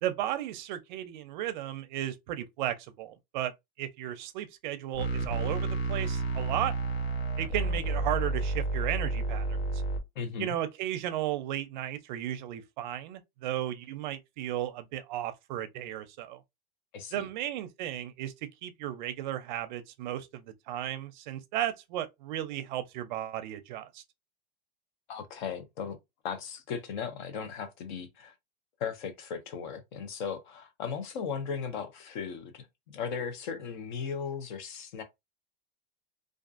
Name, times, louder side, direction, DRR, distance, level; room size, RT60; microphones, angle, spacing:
voice 1, 0.0-6.7 7.4-9.8 10.4-16.4 17.1-24.0, right 12 dB, 50° right, 0.5 m, -35 dB
sound 1, 4.9-10.0, right 3 dB, 80° left, 1.0 m, -30 dB
voice 2, 10.2-10.5 16.9-17.3 25.1-26.0 26.2-28.3 28.8-35.0, left 6 dB, 50° left, 0.6 m, -37 dB
2.4 x 2.4 x 2.4 m
supercardioid pair, 160°, 31 cm